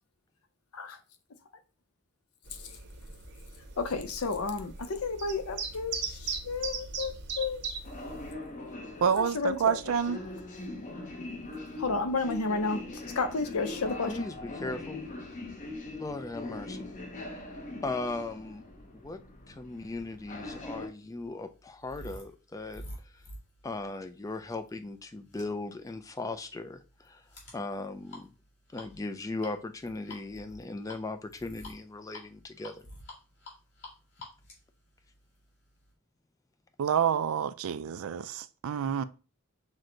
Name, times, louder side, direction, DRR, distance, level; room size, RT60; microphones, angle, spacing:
sound 1, 2.5-8.3, right 5 dB, 50° right, 0.8 m, -39 dB
voice 1, 3.8-7.6 9.2-9.8 11.8-14.2, left 4 dB, 80° left, 0.7 m, -32 dB
sound 2, 7.8-20.9, left 2 dB, 35° left, 0.7 m, -41 dB
voice 2, 9.0-10.2 36.8-39.0, right 7 dB, 70° right, 0.3 m, -28 dB
voice 3, 14.1-15.1 16.0-16.8 17.8-18.6 18.9-19.2 19.5-23.2 23.6-27.2 27.5-28.3 28.7-32.8, left 2 dB, 15° left, 0.3 m, -38 dB
sound 3, 20.2-35.9, left 1 dB, 55° left, 1.8 m, -50 dB
6.2 x 2.2 x 3.8 m
head